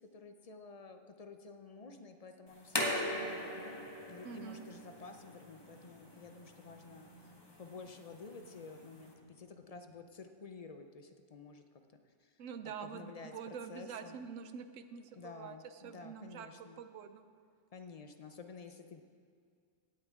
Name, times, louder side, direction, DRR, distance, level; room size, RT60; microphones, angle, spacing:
voice 1, 0.0-3.8 4.1-7.1 7.6-11.6 12.2-14.2 15.1-16.8 17.7-19.0, left 4 dB, 45° left, 7 dB, 0.5 m, -51 dB
sound 1, 2.5-9.1, left 1 dB, 20° left, 1.2 m, -41 dB
sound 2, 3.4-10.2, right 1 dB, 75° left, 3.6 m, -61 dB
voice 2, 4.2-4.6 12.4-15.6 15.8-17.2, right 7 dB, 90° right, 10 dB, 1.1 m, -46 dB
17.0 x 8.8 x 3.6 m, 2.2 s
omnidirectional pair, 1.3 m